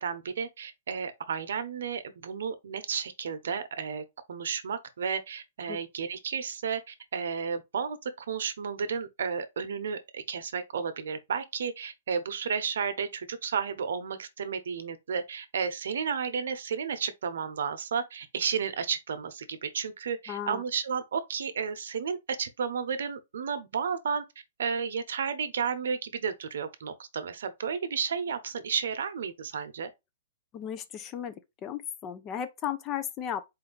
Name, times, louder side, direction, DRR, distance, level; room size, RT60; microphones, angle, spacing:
voice 1, 0.0-24.2 24.6-29.9, right 6 dB, 75° right, 0.8 m, -32 dB
voice 2, 20.3-20.6 30.5-33.4, left 9 dB, 25° left, 0.6 m, -35 dB
4.4 x 2.6 x 3.8 m
hypercardioid pair, 150°, 0 cm